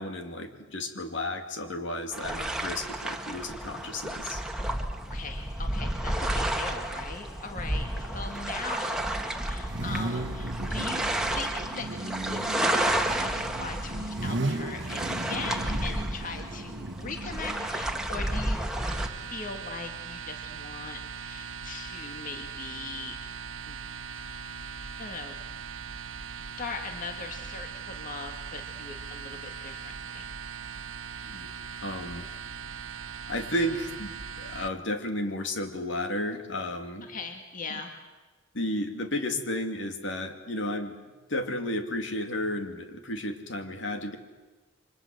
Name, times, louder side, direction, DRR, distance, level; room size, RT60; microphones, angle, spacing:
voice 1, 0.0-4.4 31.3-31.5 31.8-32.3 33.3-37.1 38.5-41.0 41.3-44.2, left 1 dB, 65° left, 6 dB, 2.6 m, -33 dB
sound 1, 2.1-19.1, right 1 dB, 5° right, 1.8 m, -31 dB
voice 2, 5.1-18.7 19.3-23.2 23.7-23.8 25.0-25.4 26.6-30.3 37.0-38.0, left 4 dB, 45° left, 4 dB, 2.0 m, -40 dB
Car / Idling / Accelerating revving vroom, 7.5-19.6, right 2 dB, 60° right, 1.2 m, -37 dB
sound 2, 18.6-34.7, right 6 dB, 90° right, 1.3 m, -40 dB
29.5 x 24.5 x 7.9 m, 1.2 s
head